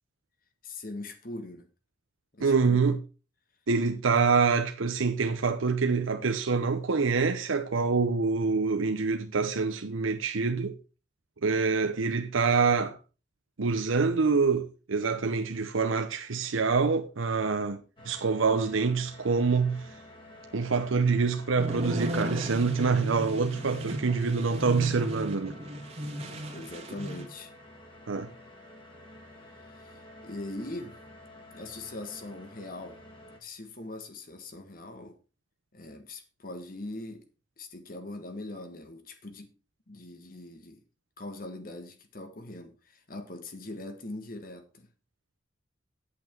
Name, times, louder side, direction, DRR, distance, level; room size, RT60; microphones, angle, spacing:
voice 1, 0.6-1.7 2.3-2.9 26.5-27.5 29.7-31.0 31.5-33.0 33.4-35.2 35.7-37.2 37.6-39.5 39.9-40.8 41.2-44.9, left 2 dB, 45° left, 1.4 m, -41 dB
voice 2, 2.4-3.0 3.7-10.8 11.4-13.0 13.6-19.9 20.5-25.6 28.1-28.3, right 4 dB, 90° right, 0.8 m, -26 dB
sound 1, 18.0-33.4, left 1 dB, 25° left, 2.3 m, -51 dB
sound 2, 21.6-27.3, equal, 35° right, 1.9 m, -36 dB
8.4 x 8.3 x 4.5 m
head